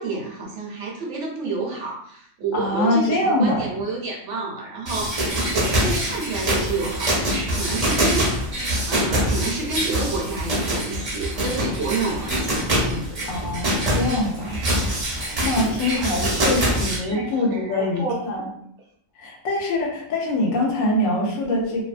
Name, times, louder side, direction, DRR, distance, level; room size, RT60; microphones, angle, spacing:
voice 1, 0.0-8.3 8.9-13.1 15.7-16.0 17.0-17.2 17.5-18.2, right 3 dB, 65° right, -1 dB, 0.9 m, -29 dB
voice 2, 2.5-3.7 13.3-14.9 15.3-18.5 19.2-21.8, left 1 dB, 80° left, -1 dB, 1.0 m, -24 dB
sound 1, 4.9-17.0, right 1 dB, 40° right, 0.6 m, -24 dB
2.7 x 2.2 x 2.4 m, 0.69 s
omnidirectional pair, 1.4 m